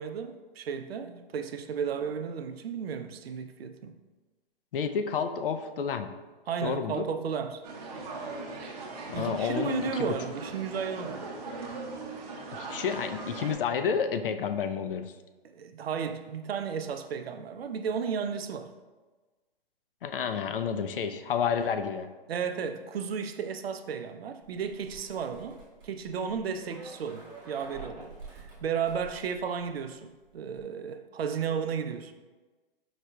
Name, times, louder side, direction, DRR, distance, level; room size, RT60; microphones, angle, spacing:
voice 1, 0.0-4.0 6.5-7.7 9.1-11.2 15.5-18.7 22.3-32.1, right 6 dB, 80° right, 0.5 m, -34 dB
voice 2, 4.7-6.1 6.6-7.1 9.1-10.2 12.5-15.1 20.0-22.1, left 6 dB, 65° left, 0.4 m, -30 dB
sound 1, 7.6-13.5, right 3 dB, 40° right, 0.7 m, -39 dB
sound 2, 24.4-30.0 30.2-30.6, right 3 dB, 15° right, 1.2 m, -48 dB
5.0 x 3.9 x 2.2 m
hypercardioid pair, 145°, 30 cm